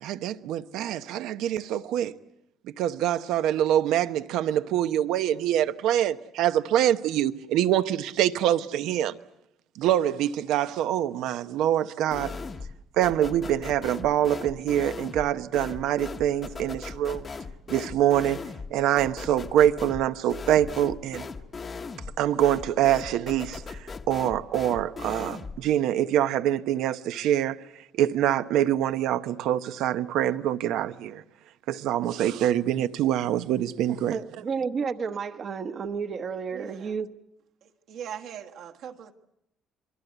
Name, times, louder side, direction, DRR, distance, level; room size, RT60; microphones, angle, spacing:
voice 1, 0.0-2.1 2.8-9.1 9.8-12.4 13.0-17.3 17.7-18.4 18.7-21.3 22.2-23.8 24.1-27.6 27.9-31.2 31.7-34.2, right 11 dB, 85° right, 0.9 m, -25 dB
sound 1, 12.1-12.8 13.0-25.6, left 4 dB, 25° left, 0.9 m, -38 dB
voice 2, 33.9-37.1, right 5 dB, 35° right, 1.0 m, -31 dB
voice 3, 36.5-36.9 37.6-39.1, right 8 dB, 65° right, 1.6 m, -40 dB
28.0 x 23.0 x 8.0 m
cardioid pair, 175°, 0 cm